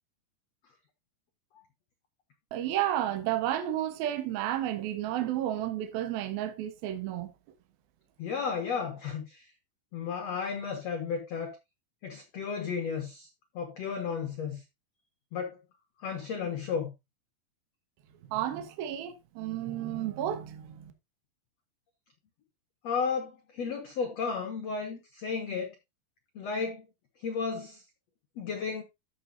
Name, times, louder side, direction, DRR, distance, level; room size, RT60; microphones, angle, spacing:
voice 1, 2.5-7.3 18.3-20.9, right 12 dB, 70° right, 2.8 m, -32 dB
voice 2, 8.2-9.5 9.9-11.5 12.0-13.3 13.5-14.6 15.3-15.6 16.0-16.9 22.8-25.7 26.3-26.8 27.2-27.8 28.4-28.8, left 5 dB, 80° left, 1.5 m, -33 dB
13.5 x 6.2 x 2.7 m
omnidirectional pair, 5.0 m